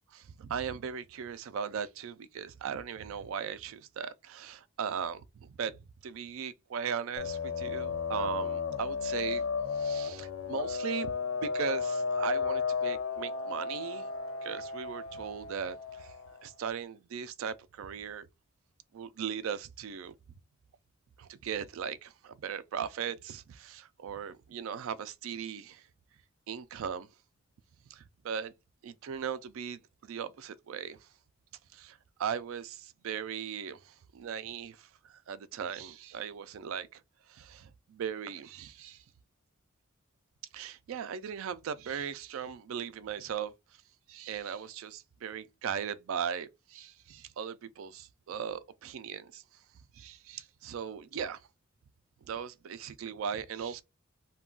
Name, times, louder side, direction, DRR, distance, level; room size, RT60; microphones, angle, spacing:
voice 1, 0.1-9.4 9.7-11.1 11.4-14.1 14.4-16.1 16.4-18.3 18.9-20.1 21.2-25.9 26.5-27.1 27.9-28.5 28.8-31.1 31.7-37.0 37.3-39.0 40.5-43.5 44.1-49.4 49.9-51.4 52.2-53.8, right 7 dB, 75° right, 0.3 m, -38 dB
sound 1, 7.2-16.4, left 5 dB, 70° left, 0.4 m, -34 dB
2.3 x 2.2 x 3.6 m
head